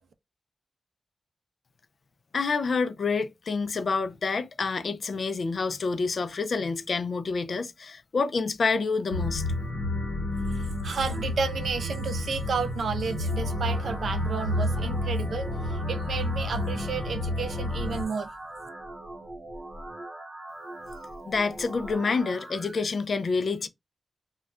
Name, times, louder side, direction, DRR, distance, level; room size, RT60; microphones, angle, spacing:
voice 1, 2.3-9.4 21.3-23.7, left 4 dB, 55° left, 0.4 m, -28 dB
sound 1, 9.1-18.0, left 1 dB, 90° left, 0.9 m, -30 dB
voice 2, 10.5-18.3, right 5 dB, 80° right, 0.4 m, -32 dB
sound 2, 12.9-22.9, right 1 dB, 40° right, 0.7 m, -41 dB
2.2 x 2.1 x 3.6 m
wide cardioid pair, 160°, 0 cm